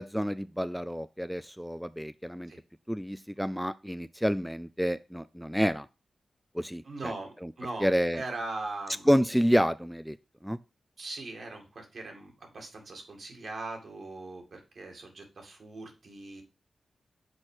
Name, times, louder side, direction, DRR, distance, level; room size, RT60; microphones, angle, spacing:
voice 1, 0.0-2.5 2.9-5.9 6.5-6.8 7.4-7.5 7.8-8.2 9.1-10.2 10.4-10.6, equal, ahead, 14 dB, 0.3 m, -28 dB
voice 2, 6.8-9.1 11.0-16.4, right 2 dB, 70° right, 2 dB, 2.0 m, -40 dB
6.3 x 4.3 x 4.8 m, 0.29 s
cardioid pair, 50°, 0 cm